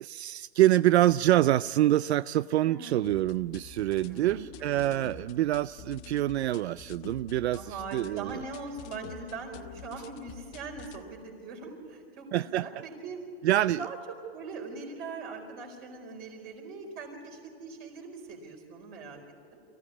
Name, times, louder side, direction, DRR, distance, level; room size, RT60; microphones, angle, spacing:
voice 1, 0.0-8.4 12.3-12.7 13.4-13.9, right 14 dB, 80° right, 17 dB, 0.5 m, -26 dB
voice 2, 2.6-3.2 3.9-5.0 7.5-13.2 13.6-14.0 14.3-19.2 19.5-19.6, right 4 dB, 30° right, 1 dB, 4.4 m, -41 dB
sound 1, 3.0-11.0, left 8 dB, 30° left, 0.8 m, -48 dB
24.0 x 15.5 x 8.6 m, 2.4 s
hypercardioid pair, 160°, 32 cm